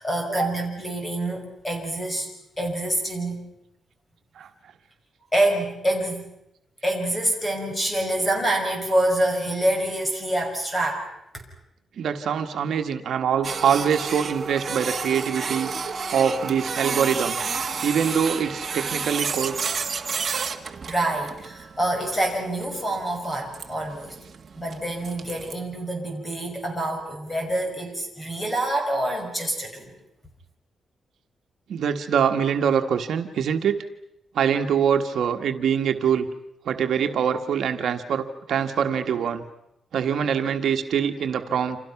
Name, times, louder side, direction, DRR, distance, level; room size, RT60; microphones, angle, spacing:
voice 1, 0.0-2.3 2.6-3.4 5.3-6.2 6.8-11.1 11.3-11.4 20.4-20.6 20.9-24.1 24.6-29.9, right 1 dB, 15° left, 3 dB, 6.3 m, -26 dB
voice 2, 12.0-15.7 16.1-17.5 17.8-19.7 31.7-33.8 34.3-36.3 36.6-39.4 39.9-41.8, right 7 dB, 70° right, 6 dB, 1.4 m, -24 dB
Printer, 13.4-25.5, right 5 dB, 35° right, 1.8 m, -31 dB
29.0 x 27.5 x 5.9 m, 0.82 s
wide cardioid pair, 150°, 0 cm